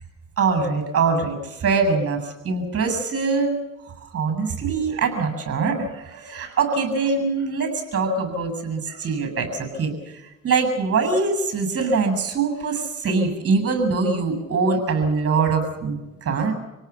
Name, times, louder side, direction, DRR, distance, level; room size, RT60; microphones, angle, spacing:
voice 1, 0.4-3.6 4.0-16.5, right 4 dB, 50° right, 8 dB, 7.6 m, -23 dB
26.5 x 18.0 x 7.2 m, 1.0 s
cardioid pair, 90°, 30 cm